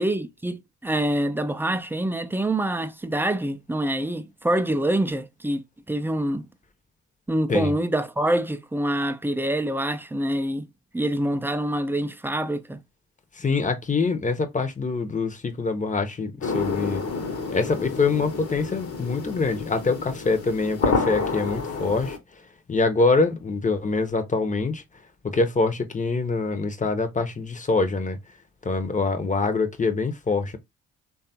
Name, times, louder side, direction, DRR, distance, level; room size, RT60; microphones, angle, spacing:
voice 1, 0.0-6.5 7.3-10.7 10.9-12.8, right 1 dB, 5° right, 0.4 m, -26 dB
voice 2, 13.4-17.0 17.5-22.2 22.7-24.8 25.2-28.2 28.6-30.6, left 3 dB, 25° left, 0.8 m, -24 dB
sound 1, 16.4-22.2, left 4 dB, 45° left, 0.9 m, -29 dB
3.3 x 2.4 x 2.7 m
hypercardioid pair, 45°, 33 cm